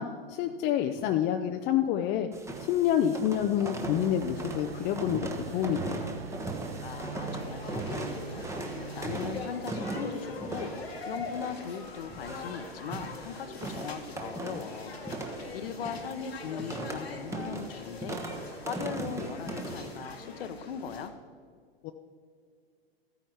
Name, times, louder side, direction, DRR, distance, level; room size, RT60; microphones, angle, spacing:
voice 1, 0.0-2.3 2.6-5.3 5.5-6.1 21.8-21.9, left 10 dB, 35° left, 5 dB, 0.6 m, -28 dB
sound 1, 2.3-20.1, right 2 dB, 10° right, 1.1 m, -39 dB
sound 2, 3.8-9.4, right 5 dB, 80° right, 1.4 m, -43 dB
voice 2, 6.8-8.4 8.9-10.7 11.1-15.0 15.3-18.2 18.6-21.1, left 7 dB, 65° left, 11 dB, 1.0 m, -39 dB
sound 3, 7.3-21.1, left 3 dB, 85° left, 1.6 m, -43 dB
13.5 x 9.3 x 4.6 m, 2.1 s
figure-of-eight pair, 100°, 30 cm